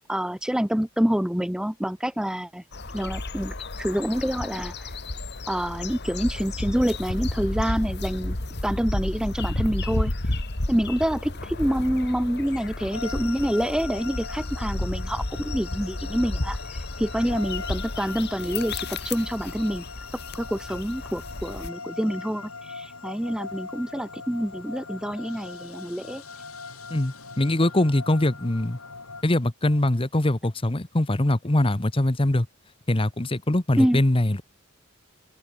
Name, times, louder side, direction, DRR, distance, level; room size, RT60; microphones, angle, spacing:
voice 1, 0.0-2.6 2.9-4.9 5.5-8.4 8.6-10.4 10.7-19.9 20.3-26.2 33.8-34.0, equal, 5° right, 0.5 m, -27 dB
sound 1, 2.7-21.7, left 2 dB, 50° left, 2.1 m, -32 dB
sound 2, 12.9-29.2, left 4 dB, 90° left, 7.8 m, -40 dB
voice 2, 26.9-28.8 29.2-32.5 32.9-34.4, left 1 dB, 25° left, 1.1 m, -23 dB
open air
head